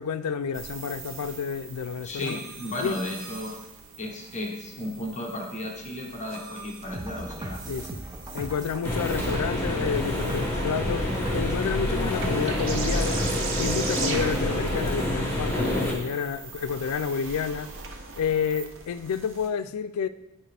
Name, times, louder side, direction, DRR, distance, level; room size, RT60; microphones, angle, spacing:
voice 1, 0.0-2.4 2.8-3.0 7.7-8.0 8.3-13.2 13.6-17.7 18.2-20.1, left 6 dB, 85° left, 0.4 m, -30 dB
sound 1, 0.5-19.5, right 4 dB, 60° right, 0.8 m, -39 dB
voice 2, 2.0-3.6 4.0-7.6, left 1 dB, 30° left, 1.0 m, -34 dB
sound 2, 6.8-15.0, right 1 dB, 15° right, 0.6 m, -38 dB
sound 3, 8.8-15.9, left 1 dB, 10° left, 1.3 m, -27 dB
8.8 x 5.0 x 3.4 m
head